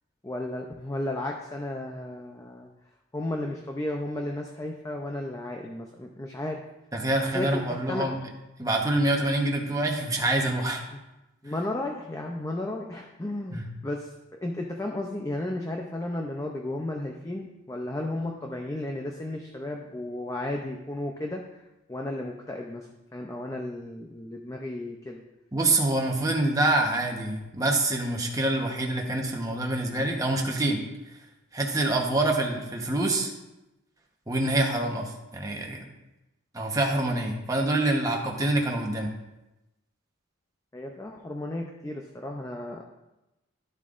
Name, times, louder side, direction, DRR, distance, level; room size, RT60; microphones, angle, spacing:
voice 1, 0.2-2.7 3.1-6.6 7.3-8.1 10.9-11.0 11.4-21.4 21.9-22.9 23.1-25.2 40.7-42.8, left 1 dB, 15° left, 1 dB, 0.5 m, -34 dB
voice 2, 6.9-8.2 8.6-10.8 13.5-13.6 25.5-30.8 31.5-33.3 34.3-35.8 36.5-39.1, right 2 dB, 15° right, 0 dB, 1.0 m, -26 dB
11.5 x 7.3 x 2.5 m, 0.98 s
head